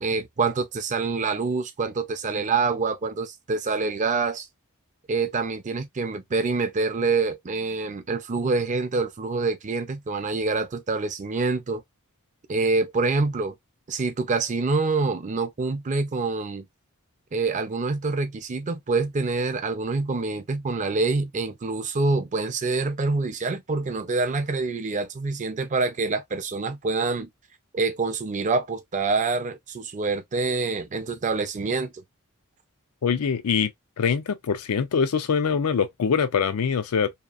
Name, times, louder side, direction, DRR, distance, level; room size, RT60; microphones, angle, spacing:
voice 1, 0.0-4.5 5.1-11.8 12.5-13.5 13.9-16.7 17.3-27.3 27.7-31.9, right 3 dB, 35° right, 0.5 m, -26 dB
voice 2, 33.0-33.7 34.0-37.1, left 6 dB, 80° left, 0.5 m, -23 dB
2.8 x 2.3 x 2.4 m
head